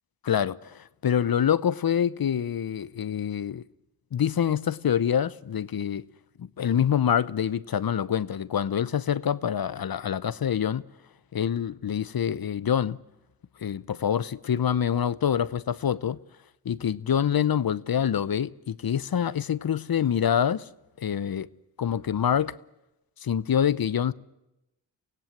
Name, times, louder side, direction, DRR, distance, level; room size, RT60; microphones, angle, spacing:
voice 1, 0.2-3.6 4.1-6.0 6.4-10.8 11.3-13.0 13.6-16.2 16.6-20.7 21.0-21.5 21.8-22.5 23.2-24.1, left 8 dB, 50° left, 0.8 m, -26 dB
24.5 x 16.5 x 7.3 m
supercardioid pair, 40°, 46 cm